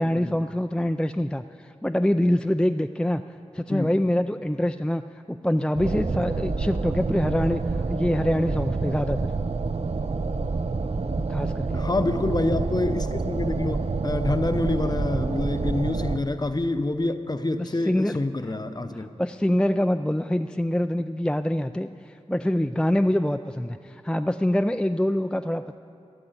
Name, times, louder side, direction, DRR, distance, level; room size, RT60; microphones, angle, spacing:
voice 1, 0.0-3.2 3.5-7.6 7.9-9.3 11.3-11.8 17.6-18.2 18.9-25.8, left 1 dB, 5° left, 8 dB, 0.4 m, -25 dB
sound 1, 5.8-16.2, right 3 dB, 60° right, 0.6 m, -27 dB
voice 2, 11.7-13.8 14.0-19.1 23.9-24.0, left 2 dB, 35° left, 9 dB, 0.8 m, -27 dB
12.5 x 10.5 x 8.1 m, 2.5 s
wide cardioid pair, 50°, 12 cm